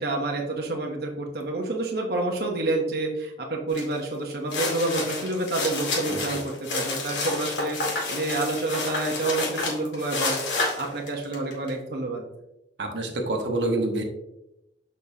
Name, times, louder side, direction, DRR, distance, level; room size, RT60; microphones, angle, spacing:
voice 1, 0.0-12.2, right 2 dB, 60° right, 0 dB, 0.9 m, -29 dB
sound 1, 3.7-3.9 4.3-11.7, left 3 dB, 85° left, 2.2 m, -29 dB
voice 2, 6.1-6.4 12.8-14.0, right 2 dB, 80° right, 2 dB, 1.1 m, -27 dB
6.7 x 5.4 x 2.7 m, 0.86 s
head